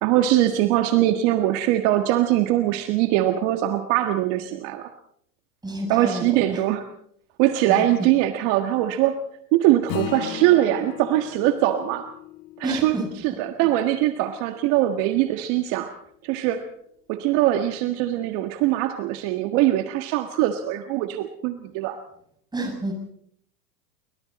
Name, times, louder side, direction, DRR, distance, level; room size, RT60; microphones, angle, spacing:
voice 1, 0.0-4.9 5.9-6.8 7.4-9.1 9.5-12.1 12.6-13.0 13.2-15.9 16.2-16.6 17.1-22.0, right 14 dB, 50° right, 7 dB, 1.7 m, -22 dB
voice 2, 5.6-6.6 7.7-7.8 12.6-13.1 22.5-22.9, right 1 dB, 10° right, 2 dB, 6.9 m, -29 dB
Acoustic guitar / Strum, 9.9-14.7, left 11 dB, 40° left, 2.4 m, -37 dB
26.0 x 23.5 x 4.2 m, 0.66 s
supercardioid pair, 135°, 48 cm